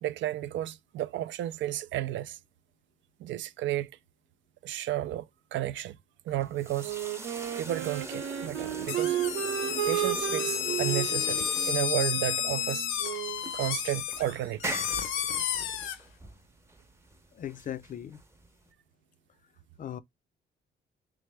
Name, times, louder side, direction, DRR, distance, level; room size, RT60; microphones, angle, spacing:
voice 1, 0.0-2.4 3.2-3.9 4.6-6.0 6.2-6.9 7.6-9.2 9.9-12.9 13.5-14.8, right 13 dB, 70° right, 0.4 m, -32 dB
sound 1, 6.3-18.7, right 2 dB, 15° right, 0.7 m, -42 dB
Wind instrument woodwind instrument, 6.8-13.5, right 13 dB, 90° right, 0.9 m, -34 dB
sound 2, 8.9-16.0, left 9 dB, 85° left, 0.7 m, -31 dB
voice 2, 17.4-18.2 19.8-20.0, left 10 dB, 45° left, 0.4 m, -38 dB
3.5 x 3.2 x 3.2 m
cardioid pair, 90°, 20 cm